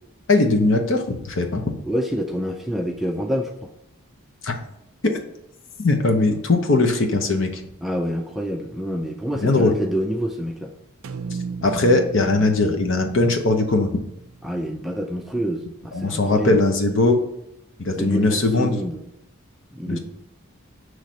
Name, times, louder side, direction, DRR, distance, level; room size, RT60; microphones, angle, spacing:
voice 1, 0.3-1.6 4.4-4.5 5.8-7.6 9.4-9.7 11.6-13.9 15.9-17.2 17.8-18.8 19.9-20.0, left 2 dB, 65° left, 4 dB, 0.8 m, -19 dB
voice 2, 1.8-3.7 7.8-10.7 14.4-16.6 17.9-19.0 19.7-20.0, equal, ahead, 2 dB, 0.3 m, -27 dB
sound 1, 11.0-15.2, right 5 dB, 75° right, 0.4 m, -36 dB
5.9 x 3.2 x 5.0 m, 0.84 s
head